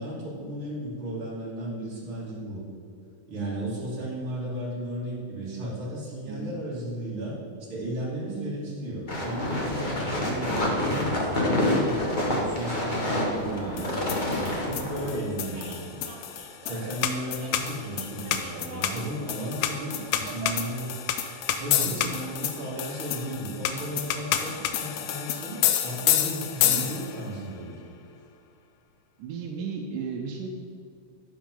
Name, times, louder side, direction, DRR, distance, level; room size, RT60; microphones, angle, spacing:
voice 1, 0.0-2.6 3.3-7.4 7.7-12.0 12.2-16.1 16.6-20.9 21.6-27.8, right 1 dB, 40° right, -7 dB, 3.6 m, -34 dB
sound 1, 9.1-15.1, left 1 dB, 55° left, 0.5 m, -27 dB
sound 2, 13.8-27.3, left 10 dB, 90° left, 2.2 m, -29 dB
sound 3, 15.0-20.6, right 2 dB, 65° right, 2.7 m, -45 dB
voice 2, 21.8-22.1 26.6-26.9 29.2-30.5, right 5 dB, 85° right, 2 dB, 2.4 m, -35 dB
11.0 x 9.2 x 3.9 m, 2.4 s
omnidirectional pair, 3.6 m